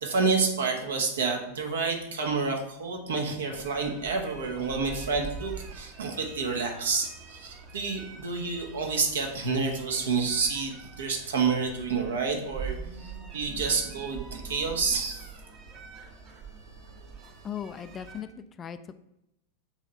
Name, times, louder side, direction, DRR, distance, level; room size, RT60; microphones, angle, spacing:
voice 1, 0.0-15.2, right 4 dB, 65° right, 3 dB, 1.2 m, -29 dB
sound 1, 3.5-18.2, right 5 dB, 35° right, 1.1 m, -44 dB
voice 2, 17.4-18.8, left 8 dB, 25° left, 10 dB, 0.4 m, -38 dB
7.0 x 3.2 x 5.4 m, 0.82 s
figure-of-eight pair, 90°, 0 cm